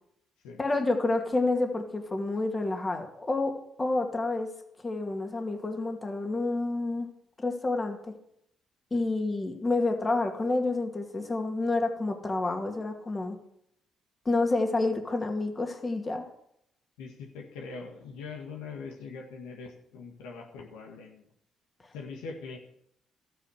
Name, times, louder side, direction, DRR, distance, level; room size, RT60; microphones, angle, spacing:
voice 1, 0.6-4.5 4.8-7.1 7.4-8.1 8.9-13.4 14.3-16.3, left 2 dB, 30° left, 4 dB, 2.3 m, -29 dB
voice 2, 17.0-21.2 21.9-22.6, left 4 dB, 90° left, 1 dB, 1.7 m, -42 dB
13.0 x 9.1 x 6.5 m, 0.75 s
supercardioid pair, 60°, 0 cm